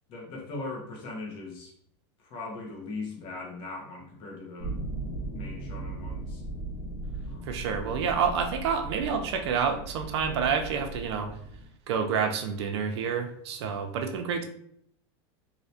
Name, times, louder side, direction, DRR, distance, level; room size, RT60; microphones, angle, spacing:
voice 1, 0.1-1.7 2.2-4.8 5.3-6.4 7.3-7.7, left 3 dB, 40° left, -1 dB, 0.9 m, -39 dB
sound 1, 4.6-11.7, right 2 dB, 85° left, 0.8 m, -38 dB
voice 2, 7.5-11.3 11.9-14.4, right 6 dB, 75° right, 5 dB, 0.6 m, -28 dB
3.2 x 2.8 x 2.8 m, 0.67 s
supercardioid pair, 160°, 14 cm